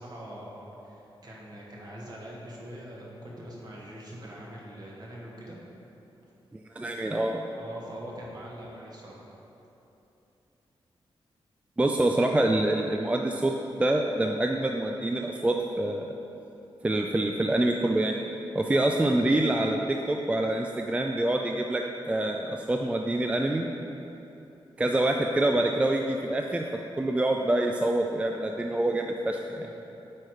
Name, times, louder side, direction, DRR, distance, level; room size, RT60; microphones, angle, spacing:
voice 1, 0.0-5.6 7.6-9.2 29.6-29.7, equal, 45° right, -4 dB, 1.5 m, -43 dB
voice 2, 6.5-7.4 11.8-16.1 16.8-18.2 18.5-23.7 24.8-26.6 27.0-29.7, right 1 dB, 15° right, 2 dB, 0.3 m, -26 dB
8.5 x 4.7 x 4.8 m, 3.0 s
wide cardioid pair, 135°, 9 cm